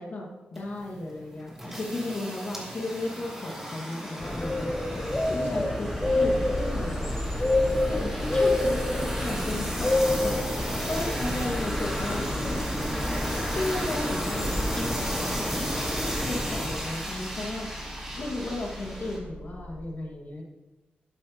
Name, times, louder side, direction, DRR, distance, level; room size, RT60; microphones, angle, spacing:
voice 1, 0.0-7.0 7.9-12.7 13.2-17.7 18.2-20.4, left 2 dB, 50° left, -1 dB, 2.1 m, -35 dB
sound 1, 0.6-19.2, right 1 dB, 10° right, 4.0 m, -35 dB
sound 2, 4.2-16.8, left 2 dB, 15° left, 0.9 m, -29 dB
sound 3, 6.0-19.9, equal, 85° right, 2.8 m, -38 dB
11.5 x 11.0 x 3.1 m, 1.1 s
wide cardioid pair, 140°, 4 cm